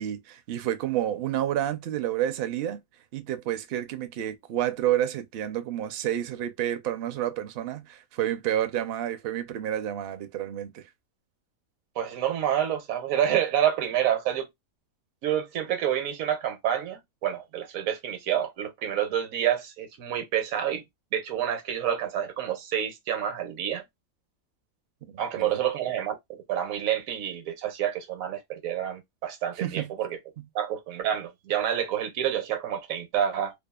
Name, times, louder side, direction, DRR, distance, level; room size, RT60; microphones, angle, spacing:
voice 1, 0.0-2.8 3.1-10.9 25.0-25.6 29.6-29.9 30.4-30.5, right 11 dB, 65° right, 0.6 m, -30 dB
voice 2, 12.0-14.5 15.2-20.8 21.1-23.8 25.2-30.2 30.5-33.5, right 10 dB, 85° right, 1.1 m, -28 dB
2.7 x 2.3 x 2.2 m
omnidirectional pair, 1.4 m